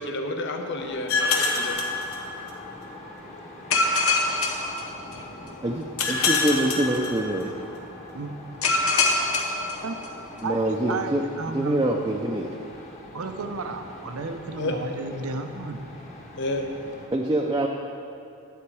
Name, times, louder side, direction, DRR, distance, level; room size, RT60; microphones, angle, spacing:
voice 1, 0.0-1.8 14.6-14.7 16.4-16.6, left 2 dB, 60° left, 4 dB, 1.0 m, -30 dB
sound 1, 0.7-17.1, left 1 dB, 30° left, 1.4 m, -44 dB
sound 2, 1.1-2.7 3.7-5.4 6.0-7.6 8.6-10.4, left 3 dB, 85° left, 1.1 m, -25 dB
voice 2, 5.6-7.6 10.4-12.5 17.1-17.7, right 1 dB, 20° right, 0 dB, 0.5 m, -25 dB
voice 3, 10.4-11.8 13.1-15.8, right 3 dB, 85° right, 7 dB, 0.7 m, -33 dB
10.0 x 8.6 x 4.8 m, 2.6 s
head